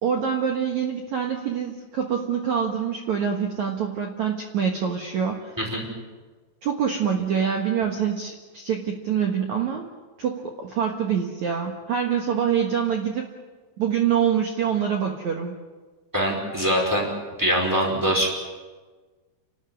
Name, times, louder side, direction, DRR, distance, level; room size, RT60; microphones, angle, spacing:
voice 1, 0.0-5.5 6.6-9.9 10.2-13.3 13.8-15.5, right 8 dB, 60° right, 2 dB, 2.0 m, -25 dB
voice 2, 16.1-17.1 17.4-18.3, equal, 5° right, 0 dB, 4.8 m, -23 dB
29.0 x 13.0 x 9.9 m, 1.4 s
omnidirectional pair, 5.2 m